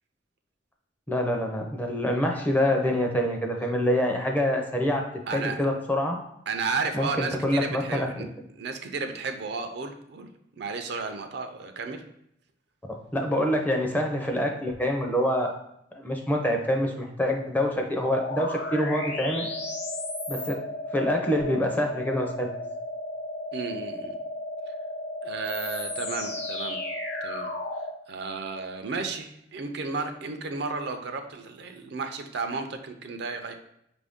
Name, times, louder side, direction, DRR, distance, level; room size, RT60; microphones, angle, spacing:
voice 1, 1.1-5.1 5.3-6.2 6.9-8.3 13.1-15.5 15.9-19.5 20.3-20.6 20.9-22.5, left 1 dB, 10° left, 2 dB, 0.5 m, -26 dB
voice 2, 5.3-5.6 6.5-8.2 8.5-12.0 23.5-24.1 25.2-26.8 27.2-27.5 28.1-33.5, right 4 dB, 65° right, 6 dB, 0.5 m, -33 dB
sound 1, 18.0-27.9, left 1 dB, 80° left, 0.8 m, -34 dB
5.2 x 2.6 x 3.5 m, 0.76 s
head